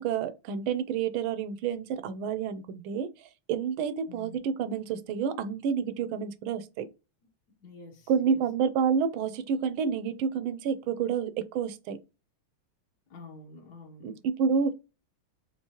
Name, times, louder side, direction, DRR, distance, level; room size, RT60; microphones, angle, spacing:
voice 1, 0.0-3.1 3.5-6.9 8.1-12.0 14.0-14.7, right 6 dB, 80° right, 1.4 m, -29 dB
voice 2, 4.1-4.4 7.6-8.4 13.1-14.2, left 3 dB, 55° left, 1.3 m, -48 dB
4.6 x 3.4 x 2.9 m
omnidirectional pair, 2.3 m